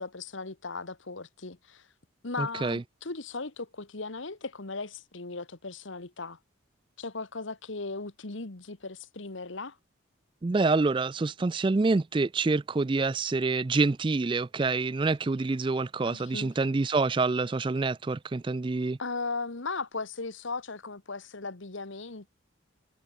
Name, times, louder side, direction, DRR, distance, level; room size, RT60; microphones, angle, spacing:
voice 1, 0.0-1.8 2.2-6.4 7.0-9.8 16.0-16.5 19.0-22.3, left 3 dB, 70° left, 1.6 m, -37 dB
voice 2, 2.4-2.8 10.4-19.0, right 3 dB, 25° right, 0.3 m, -27 dB
head